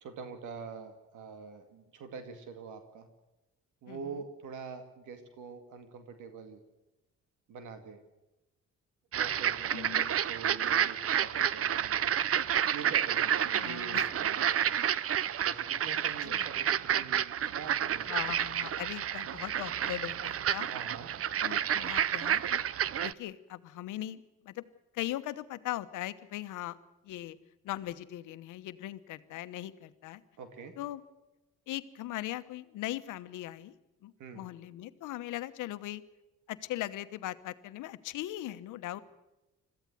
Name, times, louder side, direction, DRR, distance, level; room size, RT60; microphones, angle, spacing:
voice 1, 0.0-3.1 3.8-6.6 7.5-8.0 9.1-12.0 12.7-14.8 15.4-18.1 20.7-21.1 30.4-30.7 34.2-34.4, right 5 dB, 85° right, 7 dB, 2.3 m, -45 dB
voice 2, 3.9-4.2 9.7-10.2 13.5-14.1 16.2-16.5 18.1-20.7 21.4-22.6 23.0-24.6 24.9-26.8 27.0-27.4 27.6-30.2 30.8-31.0 31.7-33.7 34.0-36.0 36.5-39.0, left 14 dB, 90° left, 12 dB, 1.1 m, -39 dB
sound 1, 9.1-23.1, right 9 dB, 50° right, 0.7 m, -30 dB
22.0 x 14.5 x 9.4 m, 1.0 s
cardioid pair, 90°, 30 cm